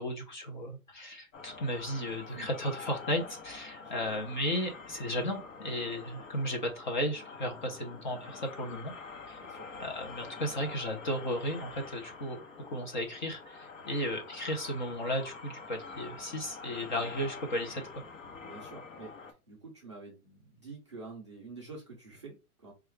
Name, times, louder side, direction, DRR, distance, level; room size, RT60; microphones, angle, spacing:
voice 1, 0.0-8.9 9.3-9.4 9.8-12.4 12.7-18.0, equal, 35° left, 3 dB, 0.6 m, -34 dB
sound 1, 1.3-19.3, left 4 dB, 55° left, 0.9 m, -46 dB
voice 2, 3.8-4.2 9.4-9.7 18.4-19.1 19.5-22.7, right 3 dB, 20° right, -4 dB, 0.5 m, -48 dB
4.5 x 2.3 x 3.2 m, 0.29 s
hypercardioid pair, 170°, 45 cm